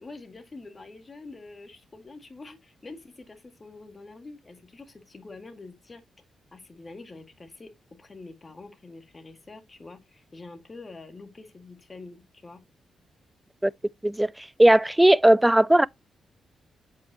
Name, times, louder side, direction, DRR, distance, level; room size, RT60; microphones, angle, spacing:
voice 1, 0.0-6.0 6.5-7.7 8.0-12.6, left 3 dB, 30° left, 2.1 m, -45 dB
voice 2, 14.6-15.9, right 1 dB, 10° right, 0.3 m, -17 dB
7.7 x 5.6 x 3.0 m
cardioid pair, 70°, 0 cm